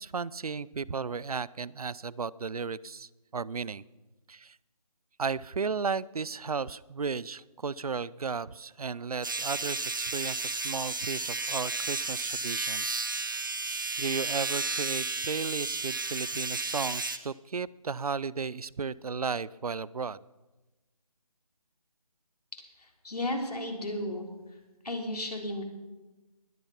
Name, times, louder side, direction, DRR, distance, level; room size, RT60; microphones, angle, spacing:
voice 1, 0.0-3.8 4.3-4.6 5.2-13.4 14.0-20.2, right 5 dB, 70° right, 22 dB, 0.6 m, -34 dB
sound 1, 9.2-17.2, right 3 dB, 35° right, 0.8 m, -33 dB
voice 2, 22.5-24.3 24.8-25.6, left 1 dB, 85° left, 2 dB, 3.6 m, -34 dB
20.0 x 9.0 x 5.7 m, 1.1 s
figure-of-eight pair, 175°, 20 cm